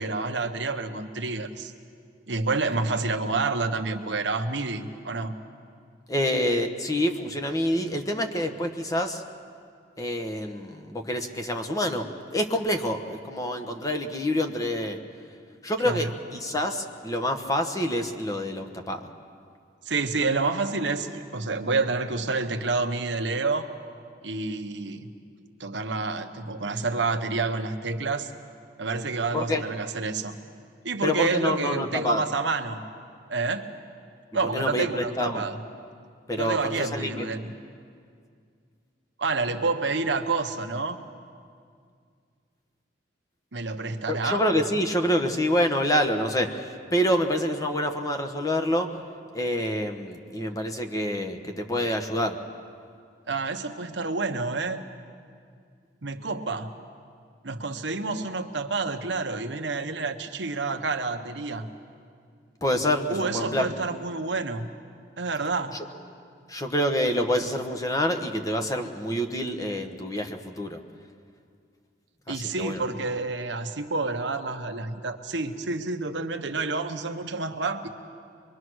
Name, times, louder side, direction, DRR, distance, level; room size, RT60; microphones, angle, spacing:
voice 1, 0.0-1.7 2.3-5.3 15.8-16.1 19.8-23.7 24.2-25.1 25.6-28.3 28.8-30.4 30.8-32.8 33.3-33.7 34.3-35.6 36.4-37.5 39.2-41.0 43.5-44.4 53.3-54.9 56.0-56.7 57.4-61.7 63.1-64.7 65.2-65.8 72.3-77.9, right 3 dB, 75° right, 7 dB, 1.2 m, -28 dB
voice 2, 6.1-9.2 10.0-15.0 15.6-19.1 29.3-29.6 31.0-32.2 34.5-35.4 36.3-37.3 44.1-49.0 49.3-52.4 62.6-63.7 66.5-70.8 72.3-72.8, equal, 20° left, 5 dB, 1.2 m, -27 dB
24.5 x 22.5 x 6.3 m, 2.2 s
head